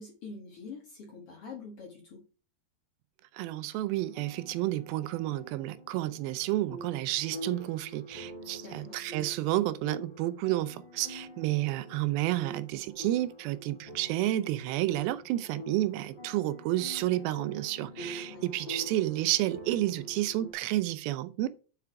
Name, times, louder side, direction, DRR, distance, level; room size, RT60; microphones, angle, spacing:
voice 1, 0.0-2.2 8.4-9.0 18.3-18.4, left 4 dB, 55° left, 1.7 m, -45 dB
voice 2, 3.3-21.5, right 15 dB, 85° right, 2.5 m, -30 dB
sound 1, 3.9-20.5, equal, 40° left, 0.8 m, -46 dB
5.9 x 4.9 x 4.7 m
omnidirectional pair, 4.2 m